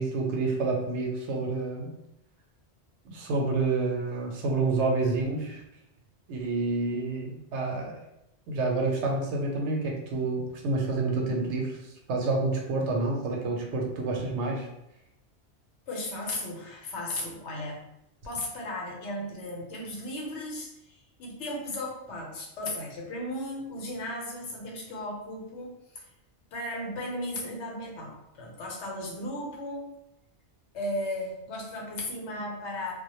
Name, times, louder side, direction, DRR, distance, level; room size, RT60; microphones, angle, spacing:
voice 1, 0.0-1.9 3.1-5.6 6.3-7.9 8.5-11.8 12.1-14.7, right 3 dB, 80° right, 0 dB, 0.9 m, -28 dB
voice 2, 15.9-17.8 18.2-26.0 26.5-29.9 30.7-32.9, left 1 dB, 85° left, -1 dB, 1.0 m, -36 dB
2.1 x 2.1 x 2.9 m, 0.84 s
omnidirectional pair, 1.2 m